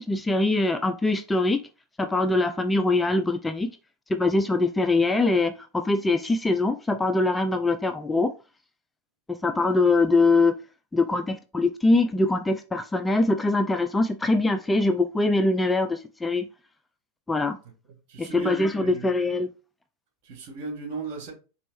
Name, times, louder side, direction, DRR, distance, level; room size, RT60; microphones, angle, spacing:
voice 1, 0.0-1.6 2.0-3.7 4.1-8.3 9.4-10.5 10.9-16.5 17.3-17.6 18.2-19.5, left 2 dB, 10° left, 0.4 m, -23 dB
voice 2, 18.1-19.1 20.2-21.3, right 4 dB, 55° right, 2.3 m, -36 dB
4.3 x 3.1 x 3.0 m
hypercardioid pair, 95°, 0 cm